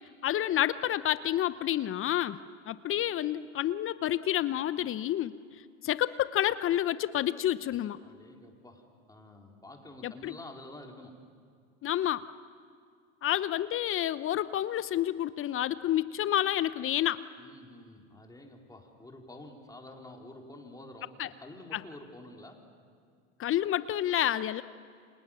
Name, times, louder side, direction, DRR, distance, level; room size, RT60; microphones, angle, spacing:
voice 1, 0.2-2.4 2.7-5.3 5.8-8.0 10.0-10.3 11.8-12.2 13.2-17.2 21.2-21.3 21.7-21.8 23.4-24.6, left 12 dB, 35° left, 15 dB, 0.9 m, -29 dB
voice 2, 8.0-11.4 17.4-22.7, left 1 dB, 10° left, 1 dB, 4.3 m, -49 dB
29.5 x 27.0 x 7.4 m, 2.2 s
hypercardioid pair, 85°, 38 cm